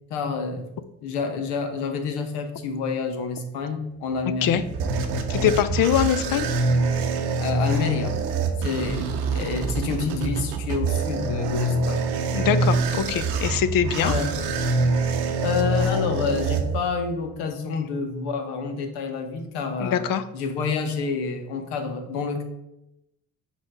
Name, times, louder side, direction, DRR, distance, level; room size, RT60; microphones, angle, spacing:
voice 1, 0.1-0.7 1.0-4.6 7.4-8.2 8.6-12.1 14.0-14.3 15.4-20.1 20.3-22.4, left 5 dB, 80° left, 6 dB, 1.0 m, -28 dB
sound 1, 4.2-17.2, right 3 dB, 90° right, 0.7 m, -25 dB
voice 2, 4.3-4.6 5.3-6.5 12.3-14.1 19.8-20.2, left 9 dB, 60° left, 13 dB, 0.6 m, -23 dB
4.6 x 4.2 x 5.1 m, 0.89 s
hypercardioid pair, 55°, 39 cm